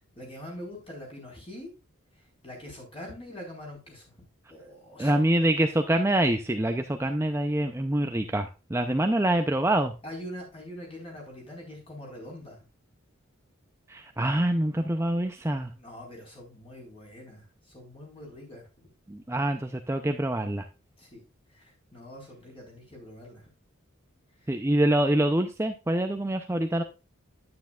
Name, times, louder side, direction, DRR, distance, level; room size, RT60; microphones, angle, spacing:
voice 1, 0.2-1.7 2.4-4.1 4.5-5.5 8.8-8.9 10.0-12.6 15.8-17.4 17.7-18.7 21.0-21.2 21.5-23.4, left 1 dB, 25° left, 0 dB, 4.6 m, -43 dB
voice 2, 5.0-9.9 13.9-15.7 19.1-20.6 24.5-26.8, right 1 dB, 10° right, 6 dB, 0.5 m, -25 dB
9.6 x 9.3 x 2.4 m, 0.29 s
head